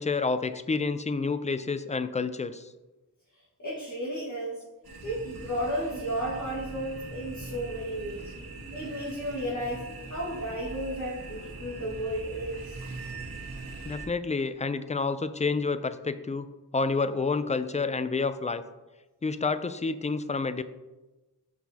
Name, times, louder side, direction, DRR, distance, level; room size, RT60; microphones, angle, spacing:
voice 1, 0.0-2.7 13.8-16.5 16.7-18.6 19.2-20.6, left 4 dB, 20° left, 11 dB, 0.3 m, -29 dB
voice 2, 3.3-4.6 5.0-8.3 8.7-12.8, equal, 45° left, -6 dB, 1.7 m, -33 dB
sound 1, 4.8-14.1, right 3 dB, 60° right, 1.4 m, -41 dB
7.1 x 5.8 x 2.8 m, 1.1 s
wide cardioid pair, 65°, 40 cm